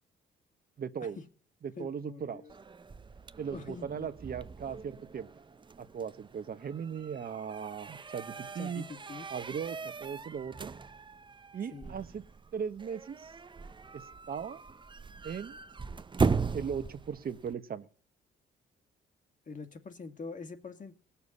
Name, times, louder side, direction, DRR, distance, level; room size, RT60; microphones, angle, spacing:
voice 1, 0.8-1.2 1.6-2.4 3.4-5.3 5.8-8.8 9.3-10.7 11.5-12.2 12.5-13.3 13.9-14.6 15.2-15.6 16.5-17.9, right 7 dB, 50° right, 10 dB, 1.2 m, -38 dB
voice 2, 1.8-2.5 3.5-4.1 8.6-9.3 11.7-12.0 19.5-20.9, left 4 dB, 40° left, 8 dB, 2.3 m, -44 dB
sound 1, 2.5-17.5, right 5 dB, 25° right, 0.7 m, -38 dB
18.0 x 7.1 x 9.7 m, 0.43 s
cardioid pair, 90°, 20 cm